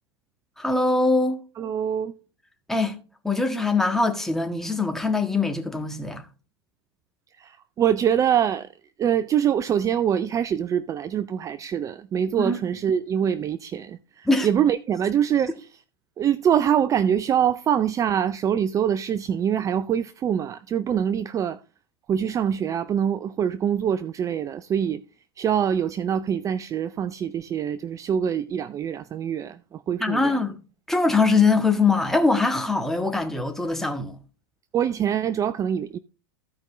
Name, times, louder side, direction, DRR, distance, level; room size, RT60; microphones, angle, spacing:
voice 1, 0.6-1.4 2.7-3.0 3.2-6.2 12.4-12.6 14.2-14.5 30.0-30.5 30.9-34.2, left 3 dB, 5° left, 1.5 m, -22 dB
voice 2, 1.6-2.1 7.3-8.7 9.0-15.7 16.2-21.6 22.1-25.0 25.4-30.4 34.7-36.0, right 9 dB, 25° right, 0.4 m, -24 dB
15.5 x 5.2 x 3.1 m
hypercardioid pair, 95°, 13 cm